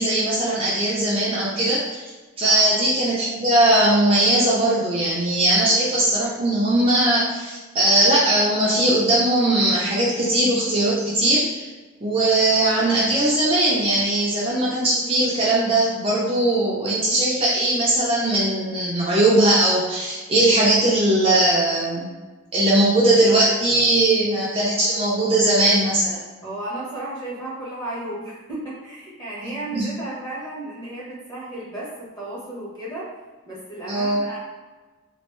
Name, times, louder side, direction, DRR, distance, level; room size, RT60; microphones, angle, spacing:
voice 1, 0.0-2.0 2.4-11.7 12.0-22.1 22.5-26.2 29.5-29.8 33.9-34.2, right 1 dB, 25° right, -7 dB, 0.5 m, -19 dB
voice 2, 26.4-33.1 33.4-34.4, right 1 dB, 20° left, -7 dB, 1.0 m, -34 dB
3.1 x 2.5 x 3.1 m, 1.3 s
head